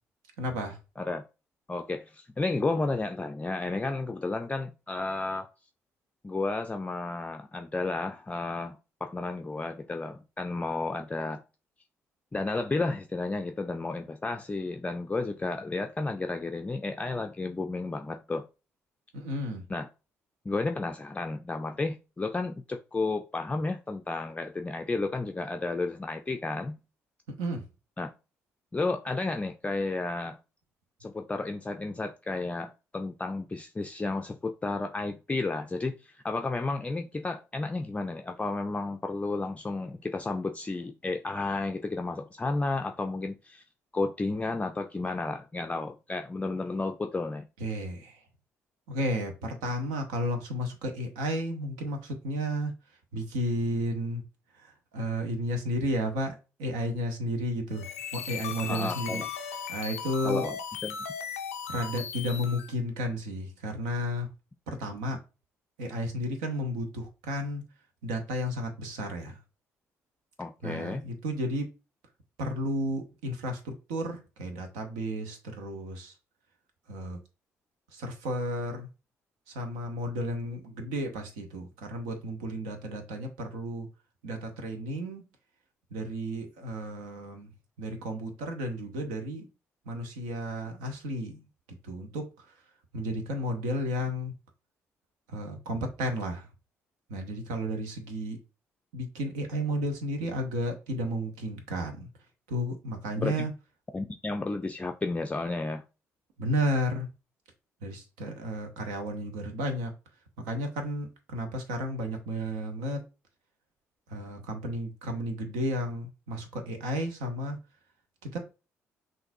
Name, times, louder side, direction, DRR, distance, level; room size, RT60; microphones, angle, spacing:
voice 1, 0.4-0.8 19.1-19.7 27.4-27.6 47.6-48.2 48.9-52.7 53.1-54.2 54.5-59.2 59.7-60.5 61.7-64.3 64.7-65.2 65.8-67.6 68.0-69.4 70.6-71.7 72.4-76.1 76.9-77.2 77.9-78.9 79.5-83.9 84.2-85.2 85.9-87.5 87.8-89.5 89.8-91.4 91.8-92.5 92.9-94.3 95.3-96.5 97.1-98.4 98.9-102.1 102.5-103.5 106.4-107.1 107.8-109.9 110.4-113.0 114.1-117.6 118.2-118.4, equal, 70° right, 0.9 m, -33 dB
voice 2, 1.7-5.5 6.2-11.4 12.3-18.5 19.7-19.9 20.5-26.8 28.0-28.1 28.7-30.4 31.0-43.6 43.9-47.5 58.7-59.3 60.2-60.6 60.8-61.0 70.4-71.0 103.1-103.5 103.9-105.8, left 3 dB, 15° left, 0.4 m, -32 dB
sound 1, 57.7-62.7, left 7 dB, 80° left, 0.4 m, -37 dB
5.7 x 2.6 x 2.7 m
figure-of-eight pair, 45°, 8 cm